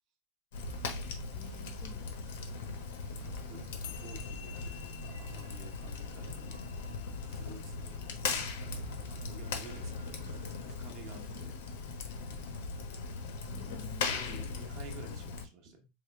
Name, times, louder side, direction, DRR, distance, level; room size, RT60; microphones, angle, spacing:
Fire, 0.5-15.5, left 4 dB, 70° left, 0.9 m, -39 dB
sound 1, 0.6-13.4, right 5 dB, 80° right, 0.7 m, -52 dB
voice 1, 1.3-2.4 11.1-11.6 13.5-15.0, left 1 dB, 10° left, 3 dB, 0.7 m, -54 dB
voice 2, 3.2-6.6 7.2-10.3 10.6-11.6 13.4-15.9, right 3 dB, 40° right, 4 dB, 0.8 m, -52 dB
sound 2, 3.8-10.4, left 11 dB, 55° left, 0.5 m, -54 dB
4.8 x 2.1 x 3.3 m, 0.26 s
supercardioid pair, 175°, 0 cm